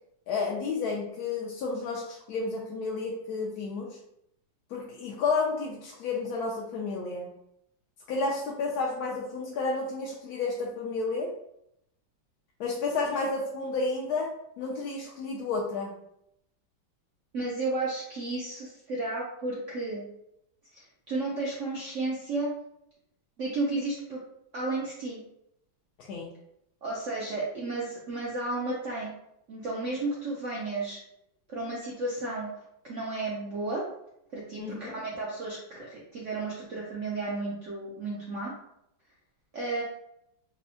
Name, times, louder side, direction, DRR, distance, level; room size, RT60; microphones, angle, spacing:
voice 1, 0.3-4.0 4.7-7.3 8.1-11.3 12.6-16.0 26.0-26.3 34.6-35.0, left 3 dB, 75° left, -2 dB, 0.8 m, -31 dB
voice 2, 17.3-20.0 20.7-22.5 23.4-24.2 24.5-25.2 26.8-29.1 29.5-31.0 31.5-32.5 32.8-33.8 34.3-38.5 39.5-39.8, right 2 dB, 75° right, -4 dB, 0.6 m, -33 dB
4.3 x 2.0 x 2.7 m, 0.76 s
omnidirectional pair, 2.1 m